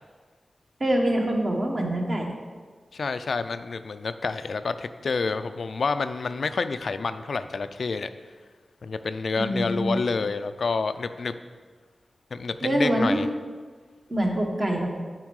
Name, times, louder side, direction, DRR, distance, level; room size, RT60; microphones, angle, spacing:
voice 1, 0.8-2.3 9.4-10.0 12.6-13.3 14.1-14.9, right 1 dB, 35° right, 1 dB, 1.2 m, -24 dB
voice 2, 2.9-8.1 8.8-11.3 12.3-13.3, left 4 dB, 70° left, 11 dB, 0.3 m, -28 dB
9.4 x 4.4 x 4.7 m, 1.5 s
wide cardioid pair, 100°, 0 cm